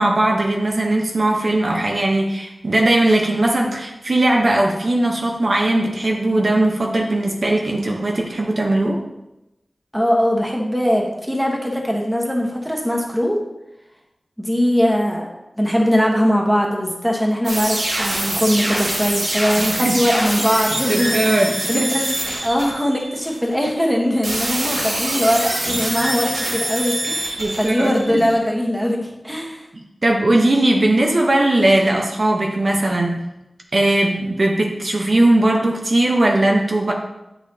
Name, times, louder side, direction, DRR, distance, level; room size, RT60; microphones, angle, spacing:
voice 1, 0.0-9.0 19.6-20.0 20.9-21.8 27.4-28.3 30.0-33.2 33.7-36.9, right 1 dB, 55° right, 0 dB, 0.9 m, -18 dB
voice 2, 9.9-13.4 14.4-15.3 15.6-22.2 22.4-29.6, equal, 5° right, -1 dB, 1.3 m, -21 dB
sound 1, 17.4-23.5 24.2-28.3, right 1 dB, 85° right, 1.7 m, -24 dB
8.4 x 5.7 x 2.8 m, 0.93 s
wide cardioid pair, 85°, 0 cm